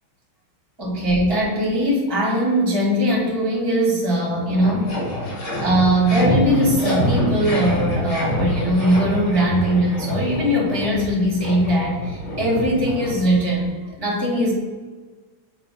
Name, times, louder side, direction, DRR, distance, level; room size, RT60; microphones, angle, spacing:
voice 1, 0.8-5.0 5.6-14.5, equal, 15° right, -3 dB, 1.4 m, -20 dB
sound 1, 3.9-4.0 4.2-13.6, equal, 75° left, 2.8 m, -26 dB
7.8 x 2.8 x 5.6 m, 1.4 s
omnidirectional pair, 2.2 m